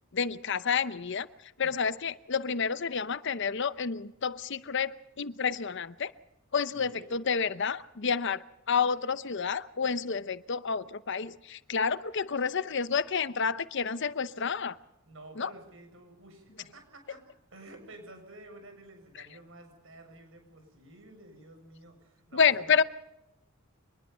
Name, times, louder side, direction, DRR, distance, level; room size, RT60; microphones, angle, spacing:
voice 1, 0.1-6.1 6.5-14.8 15.4-15.5 22.3-22.8, left 6 dB, 60° left, 0.8 m, -29 dB
voice 2, 6.7-7.1 15.0-17.2 17.5-22.8, right 2 dB, 70° right, 7.2 m, -51 dB
25.0 x 20.5 x 5.6 m
head